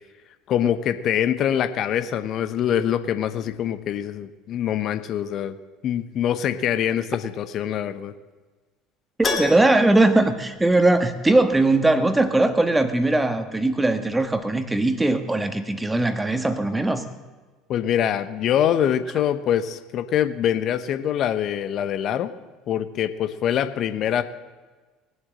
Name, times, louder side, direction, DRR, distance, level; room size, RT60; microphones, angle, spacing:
voice 1, 0.5-5.6 5.8-8.1 17.7-22.3 22.7-24.2, left 10 dB, 50° left, 11 dB, 1.0 m, -24 dB
Keyboard (musical), 9.2-11.3 11.5-11.6 14.3-14.4 14.7-14.8, left 4 dB, 30° left, 2.6 m, -32 dB
voice 2, 9.2-17.0, right 2 dB, 10° right, 9 dB, 1.6 m, -20 dB
21.0 x 8.0 x 7.7 m, 1.3 s
figure-of-eight pair, 65°, 0 cm